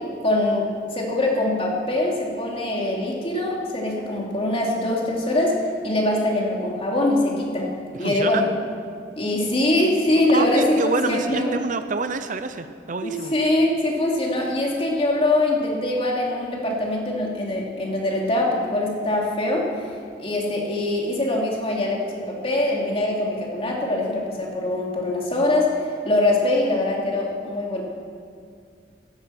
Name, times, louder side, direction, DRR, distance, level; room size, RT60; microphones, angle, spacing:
voice 1, 0.2-0.7 0.9-5.5 5.8-7.7 8.0-8.5 9.2-11.5 13.0-19.6 20.2-25.7 26.0-27.8, left 1 dB, 30° left, -2 dB, 2.9 m, -23 dB
voice 2, 8.0-8.4 10.3-13.3, right 4 dB, 45° right, 9 dB, 0.6 m, -27 dB
15.5 x 13.5 x 6.0 m, 2.2 s
head